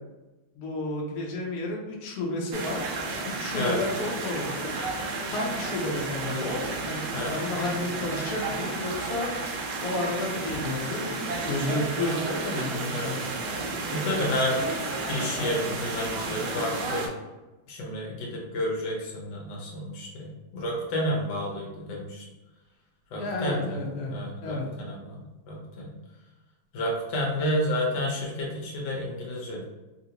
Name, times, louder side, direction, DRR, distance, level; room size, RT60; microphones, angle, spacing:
voice 1, 0.5-2.8 3.4-4.8 5.3-9.3 9.8-13.3 23.2-24.1 24.4-24.6, left 2 dB, 80° left, -2 dB, 0.8 m, -31 dB
sound 1, 2.5-17.1, right 3 dB, 70° right, 1.0 m, -32 dB
voice 2, 13.9-14.6 15.1-17.0 17.7-22.3 23.1-23.8 24.1-25.9 26.7-29.7, left 1 dB, 65° left, -2 dB, 1.3 m, -30 dB
3.3 x 2.5 x 2.8 m, 1.1 s
omnidirectional pair, 2.3 m